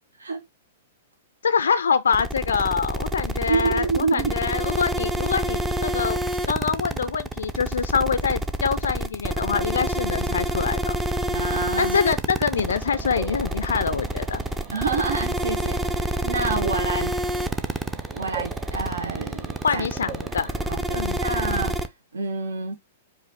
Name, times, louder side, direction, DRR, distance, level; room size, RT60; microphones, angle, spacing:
voice 1, 1.4-6.2 6.5-11.0 11.8-14.4 19.6-20.5 20.9-21.2, left 6 dB, 70° left, 0.3 m, -25 dB
sound 1, 2.1-21.9, right 1 dB, 10° right, 0.5 m, -27 dB
voice 2, 3.4-4.5 11.3-12.0 14.7-17.1 18.1-19.8 20.7-22.8, right 4 dB, 70° right, 0.8 m, -28 dB
sound 2, 12.5-20.7, right 5 dB, 35° right, 1.7 m, -41 dB
5.0 x 2.4 x 4.0 m
figure-of-eight pair, 105°, 0 cm